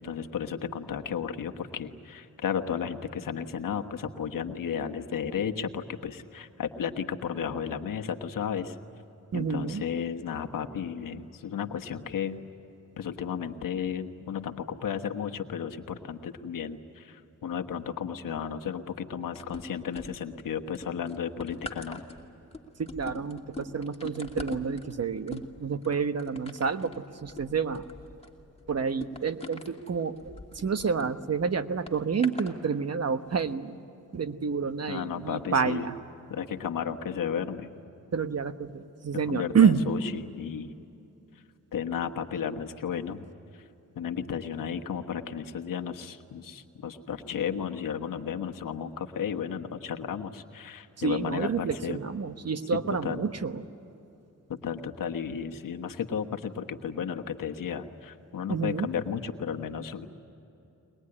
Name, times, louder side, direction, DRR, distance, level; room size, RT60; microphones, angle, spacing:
voice 1, 0.0-8.7 9.3-12.4 13.0-22.0 34.9-35.9 36.3-37.7 39.3-40.7 41.7-43.3 44.0-52.0 52.7-53.2 54.5-60.1, left 7 dB, 90° left, 6 dB, 1.3 m, -33 dB
voice 2, 9.3-9.8 22.8-27.8 28.7-33.8 34.1-35.9 38.1-39.8 51.0-53.6 58.5-58.9, right 6 dB, 50° right, 10 dB, 1.2 m, -28 dB
sound 1, 19.4-20.4 20.7-31.1 31.9-32.5 33.3-33.4, left 2 dB, 20° left, 2.6 m, -43 dB
23.0 x 20.5 x 9.9 m, 2.9 s
cardioid pair, 75°, 32 cm